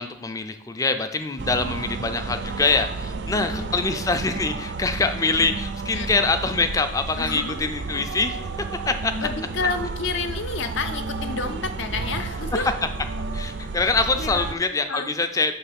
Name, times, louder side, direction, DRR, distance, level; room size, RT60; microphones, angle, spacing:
voice 1, 0.0-8.5 8.9-9.3 13.3-15.5, left 3 dB, 15° left, 8 dB, 0.3 m, -24 dB
sound 1, 1.4-14.5, right 4 dB, 55° right, 0.4 m, -32 dB
voice 2, 3.3-3.9 5.9-6.1 7.2-7.6 9.2-12.7 14.1-14.5 14.9-15.1, left 4 dB, 65° left, 7 dB, 0.6 m, -30 dB
6.1 x 3.3 x 5.7 m, 0.76 s
head